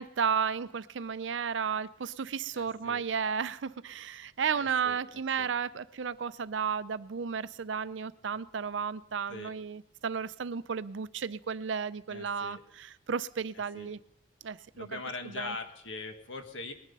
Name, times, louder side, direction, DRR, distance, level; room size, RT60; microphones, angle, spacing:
voice 1, 0.0-14.0 14.4-14.9 15.4-15.5, right 6 dB, 80° right, 0.5 m, -33 dB
voice 2, 2.5-3.0 4.5-5.5 9.3-9.5 12.1-12.6 13.7-13.9 14.7-16.7, left 3 dB, 85° left, 1.8 m, -42 dB
20.5 x 10.5 x 5.4 m
head